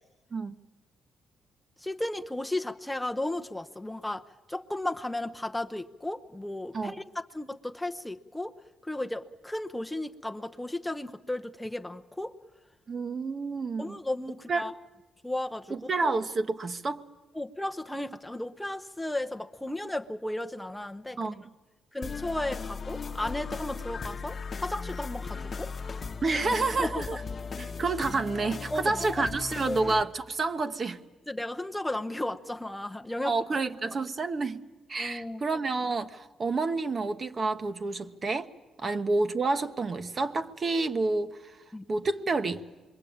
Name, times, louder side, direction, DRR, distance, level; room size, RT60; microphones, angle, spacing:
voice 1, 1.8-8.5 8.8-12.4 13.8-14.7 15.2-15.9 17.3-21.4 21.9-25.7 26.7-27.1 28.7-29.3 29.7-29.8 31.3-33.3 35.0-35.4 38.8-38.9 41.7-41.8, left 1 dB, 5° left, 0.8 m, -34 dB
voice 2, 12.9-14.0 14.5-14.6 15.7-17.0 21.2-21.4 26.2-27.2 27.6-31.0 33.2-34.6 34.9-38.5 38.8-41.6 41.9-42.6, right 3 dB, 40° right, 1.1 m, -29 dB
sound 1, 22.0-30.0, left 5 dB, 40° left, 1.1 m, -37 dB
26.5 x 22.5 x 8.8 m
cardioid pair, 90°, 0 cm